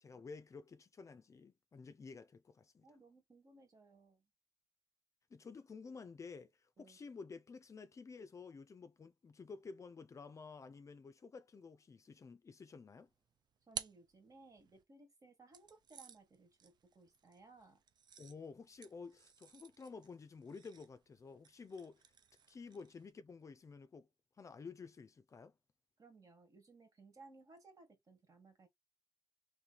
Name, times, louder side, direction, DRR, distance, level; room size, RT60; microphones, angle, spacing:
voice 1, 0.0-2.8 5.3-13.1 18.2-22.1 22.5-24.1 24.4-25.5, left 4 dB, 40° left, 0.5 m, -52 dB
voice 2, 2.8-4.2 6.8-7.0 13.7-17.8 26.0-28.7, right 3 dB, 45° right, 1.7 m, -62 dB
sound 1, 13.0-14.8 15.5-23.1, right 8 dB, 65° right, 0.5 m, -54 dB
3.1 x 3.1 x 3.9 m
cardioid pair, 85°, 8 cm